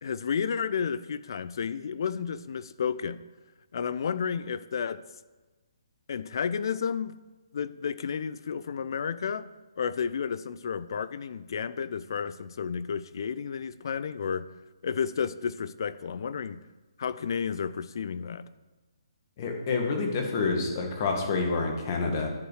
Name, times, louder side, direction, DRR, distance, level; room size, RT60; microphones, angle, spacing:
voice 1, 0.0-3.2 3.7-5.0 6.1-7.2 7.5-9.5 9.8-14.5 14.8-16.6 17.0-18.5, left 6 dB, 60° left, 0.5 m, -31 dB
voice 2, 19.4-22.3, left 4 dB, 40° left, 1.9 m, -28 dB
10.5 x 4.9 x 6.4 m
hypercardioid pair, 150°, 3 cm